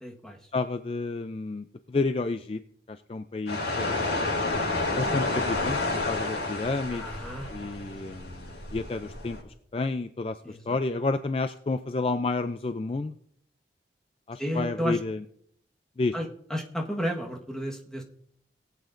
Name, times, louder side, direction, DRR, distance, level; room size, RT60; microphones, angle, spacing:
voice 1, 0.0-0.4 4.8-5.4 6.9-7.5 10.4-10.8 14.4-15.0 16.1-18.0, equal, 5° left, 0 dB, 1.3 m, -33 dB
voice 2, 0.5-2.6 2.9-4.0 4.9-5.8 6.1-7.0 7.5-9.4 9.7-10.4 10.7-13.2 14.3-15.2 16.0-16.1, left 3 dB, 30° left, 9 dB, 0.3 m, -30 dB
sound 1, 3.5-9.4, left 2 dB, 80° left, 5.4 m, -30 dB
19.0 x 8.4 x 2.6 m, 0.67 s
head